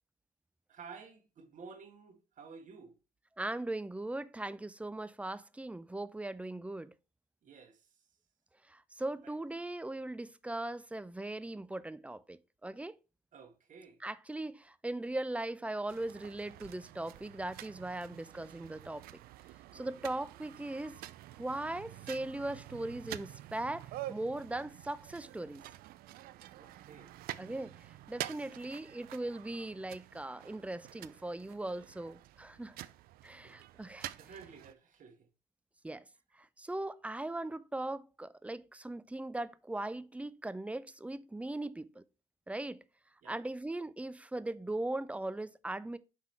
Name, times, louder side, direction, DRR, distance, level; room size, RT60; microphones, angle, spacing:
voice 1, 0.7-3.0 7.4-8.0 9.2-9.3 13.3-14.0 19.7-20.1 26.6-27.2 33.2-33.6 33.9-35.3 43.2-43.4, right 5 dB, 55° right, 1.6 m, -53 dB
voice 2, 3.4-6.9 8.7-12.9 14.0-19.0 19.7-21.0 21.4-25.6 27.4-32.8 33.2-34.1 35.8-36.1 36.4-42.0 42.5-42.8 43.3-46.0, right 2 dB, 10° right, 0.4 m, -39 dB
sound 1, 15.9-34.7, right 15 dB, 70° right, 0.4 m, -48 dB
5.8 x 3.6 x 4.6 m
supercardioid pair, 75°, 16 cm